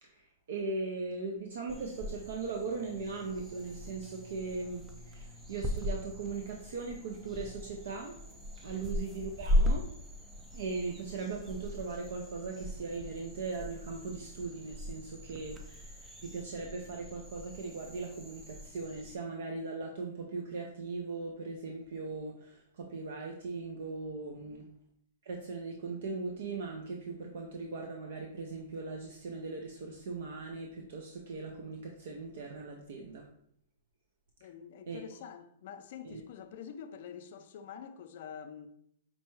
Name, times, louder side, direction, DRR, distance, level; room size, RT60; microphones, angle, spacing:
voice 1, 0.0-8.2 8.6-9.8 10.5-24.7 25.2-33.3 34.9-35.0 36.0-36.2, right 4 dB, 70° right, 0.5 m, -39 dB
sound 1, 1.7-19.2, left 1 dB, 10° right, 0.4 m, -38 dB
voice 2, 24.3-24.6 34.4-38.7, left 8 dB, 55° left, 0.4 m, -47 dB
5.2 x 2.2 x 3.1 m
hypercardioid pair, 150°, 0 cm